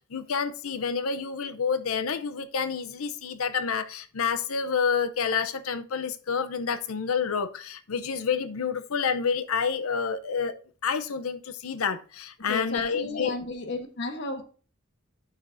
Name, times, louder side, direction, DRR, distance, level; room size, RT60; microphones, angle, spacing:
voice 1, 0.1-10.6 10.8-13.4, left 6 dB, 80° left, 0.6 m, -28 dB
voice 2, 12.5-14.4, left 2 dB, 60° left, 1.3 m, -33 dB
11.0 x 5.8 x 2.6 m
head